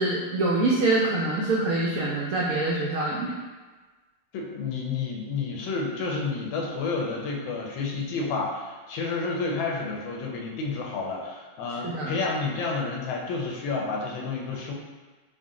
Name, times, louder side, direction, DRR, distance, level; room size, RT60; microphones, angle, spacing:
voice 1, 0.0-3.3 11.8-12.1, right 2 dB, 90° right, -5 dB, 0.7 m, -25 dB
voice 2, 4.3-14.7, left 4 dB, 85° left, -1 dB, 1.4 m, -30 dB
3.9 x 2.1 x 3.6 m, 1.3 s
omnidirectional pair, 2.0 m